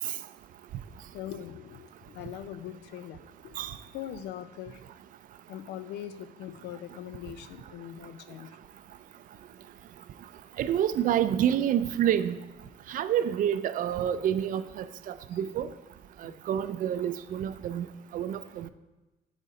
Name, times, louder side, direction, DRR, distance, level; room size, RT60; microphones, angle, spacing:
voice 1, 1.1-4.8 5.5-8.5 15.3-15.4 16.2-16.4, left 10 dB, 75° left, 12 dB, 0.5 m, -42 dB
voice 2, 10.6-12.4 12.9-15.7 16.2-17.9 18.1-18.7, right 10 dB, 55° right, 13 dB, 0.4 m, -28 dB
6.5 x 4.1 x 4.9 m, 1.1 s
cardioid pair, 110°, 17 cm